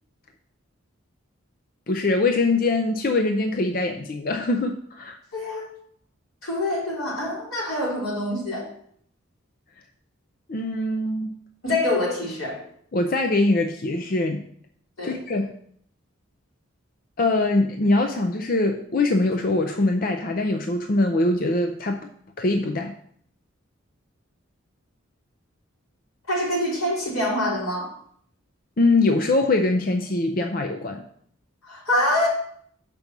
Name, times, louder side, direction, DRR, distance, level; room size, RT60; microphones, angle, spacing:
voice 1, 1.9-5.2 10.5-11.4 12.9-14.4 15.0-15.5 17.2-22.0 22.4-22.9 28.8-31.0, left 2 dB, 40° left, 5 dB, 0.5 m, -23 dB
voice 2, 5.3-5.6 6.4-8.7 11.6-12.6 15.0-15.2 26.3-27.9 31.6-32.3, left 1 dB, 85° left, -4 dB, 3.5 m, -25 dB
6.8 x 5.3 x 5.9 m, 0.65 s
head